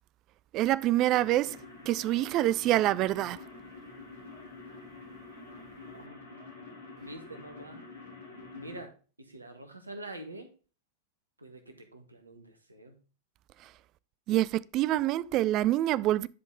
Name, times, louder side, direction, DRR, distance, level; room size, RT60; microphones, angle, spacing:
voice 1, 0.5-1.6 1.9-3.4 14.3-16.3, right 14 dB, 35° right, 0.4 m, -26 dB
sound 1, 0.9-8.8, left 3 dB, 75° left, 3.0 m, -47 dB
voice 2, 5.9-6.5 7.0-7.8 8.6-8.9 9.2-10.5 11.4-13.0, right 1 dB, 80° right, 1.7 m, -46 dB
11.0 x 5.3 x 3.5 m
figure-of-eight pair, 90°, 0 cm